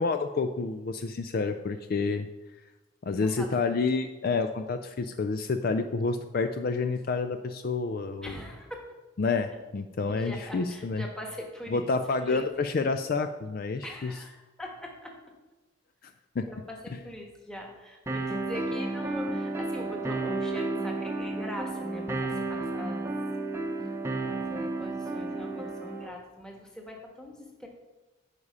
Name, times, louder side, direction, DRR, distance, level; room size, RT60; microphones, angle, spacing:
voice 1, 0.0-2.3 3.0-8.4 9.2-11.0 11.7-14.1 16.4-16.5, left 4 dB, 45° left, 8 dB, 0.3 m, -29 dB
voice 2, 3.2-3.7 8.2-8.8 10.1-11.9 12.2-12.4 13.8-15.1 16.5-23.1 24.3-27.7, left 1 dB, 5° left, 1 dB, 1.2 m, -42 dB
sound 1, 18.1-26.1, right 2 dB, 10° right, 0.8 m, -32 dB
9.8 x 4.8 x 5.5 m, 1.1 s
head